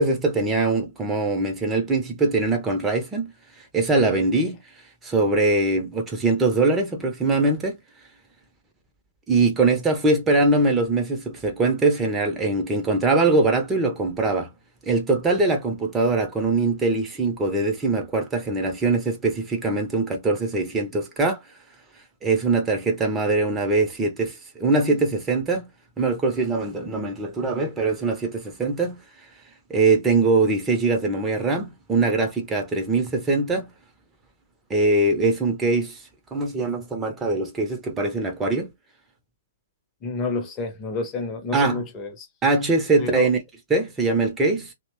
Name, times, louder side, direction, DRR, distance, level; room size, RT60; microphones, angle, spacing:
voice 1, 0.0-3.3 3.7-4.6 5.0-7.8 9.3-14.5 14.9-21.4 22.2-25.7 26.0-29.0 29.7-33.7 34.7-36.0 36.3-38.7 41.5-41.9 42.4-43.4 43.7-44.7, right 3 dB, 15° right, 0.6 m, -22 dB
voice 2, 40.0-42.3 43.0-43.3, left 4 dB, 25° left, 0.7 m, -29 dB
2.8 x 2.1 x 2.9 m
figure-of-eight pair, 120°, 0 cm